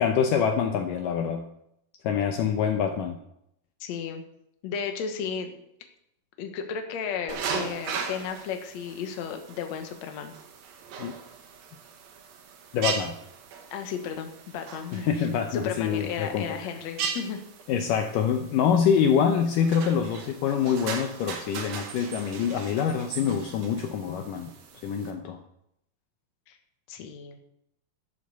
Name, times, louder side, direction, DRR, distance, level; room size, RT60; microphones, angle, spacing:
voice 1, 0.0-1.4 2.0-3.2 11.0-11.1 12.7-13.2 14.9-16.5 17.7-24.5 24.8-25.4, left 7 dB, 75° left, 4 dB, 2.3 m, -25 dB
voice 2, 3.8-4.2 4.6-5.5 6.4-10.3 13.7-15.1 15.5-17.4 26.5-26.6 26.9-27.4, left 7 dB, 60° left, 5 dB, 2.2 m, -34 dB
sound 1, 7.3-25.1, right 6 dB, 75° right, 3.3 m, -38 dB
12.0 x 7.8 x 6.8 m, 0.77 s
omnidirectional pair, 4.2 m